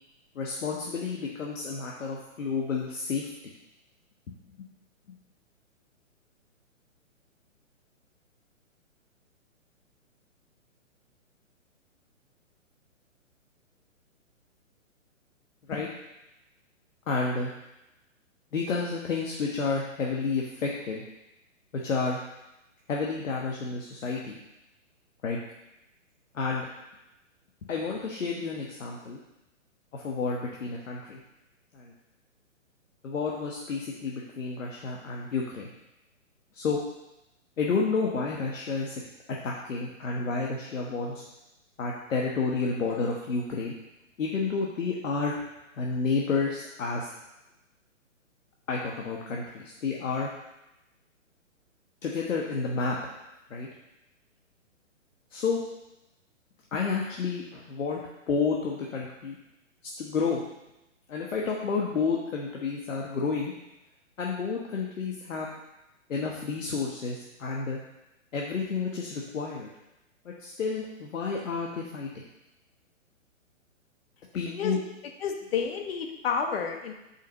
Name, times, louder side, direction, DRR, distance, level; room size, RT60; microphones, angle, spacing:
voice 1, 0.3-3.3 5.1-5.2 15.7-15.9 17.1-17.5 18.5-21.0 21.8-22.2 22.9-24.4 25.2-25.4 26.3-26.7 27.7-29.2 29.9-31.2 31.7-31.9 33.0-35.7 36.5-36.8 37.6-39.0 39.4-41.2 41.8-43.7 44.2-45.4 45.7-47.1 48.7-50.3 52.0-52.9 53.5-53.7 55.3-55.6 56.7-58.0 58.3-59.4 60.0-60.4 61.1-63.5 64.2-65.5 66.1-67.8 68.3-69.7 70.2-72.2 74.3-74.8, left 4 dB, 70° left, -2 dB, 1.3 m, -30 dB
voice 2, 74.3-74.8 75.2-76.9, left 6 dB, 45° left, 4 dB, 1.2 m, -30 dB
5.7 x 4.5 x 6.3 m, 0.94 s
hypercardioid pair, 135°, 40 cm